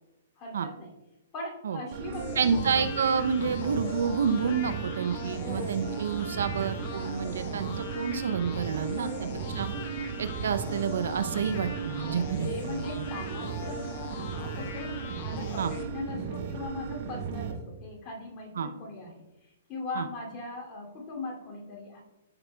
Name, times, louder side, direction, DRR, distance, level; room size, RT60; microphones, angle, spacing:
voice 1, 0.4-0.9 1.3-2.6 5.4-5.9 8.8-9.6 11.9-22.0, left 3 dB, 30° left, -2 dB, 2.6 m, -40 dB
sound 1, 1.9-17.5, right 6 dB, 55° right, 1.3 m, -36 dB
sound 2, 2.1-15.8, left 6 dB, 50° left, 0.8 m, -42 dB
voice 2, 2.4-9.1 9.6-9.7 10.2-13.1 15.6-15.7 18.6-18.7 20.0-20.1, right 6 dB, 75° right, 11 dB, 0.6 m, -29 dB
12.5 x 5.8 x 2.3 m, 1.0 s
hypercardioid pair, 135°, 0 cm